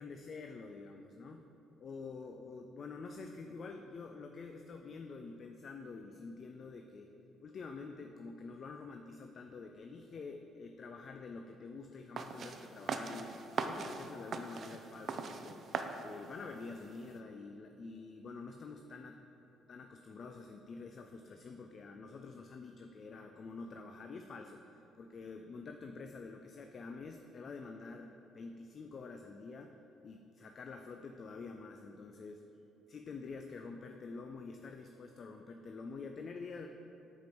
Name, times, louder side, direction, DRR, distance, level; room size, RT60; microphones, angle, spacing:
voice 1, 0.0-1.5 1.8-7.1 7.4-13.3 13.6-15.6 16.0-19.2 19.7-29.7 30.0-32.4 32.9-36.7, left 4 dB, 50° left, 5 dB, 0.3 m, -47 dB
sound 1, 12.2-17.2, right 4 dB, 55° right, 0.4 m, -41 dB
5.4 x 4.9 x 4.5 m, 3.0 s
supercardioid pair, 65°, 0 cm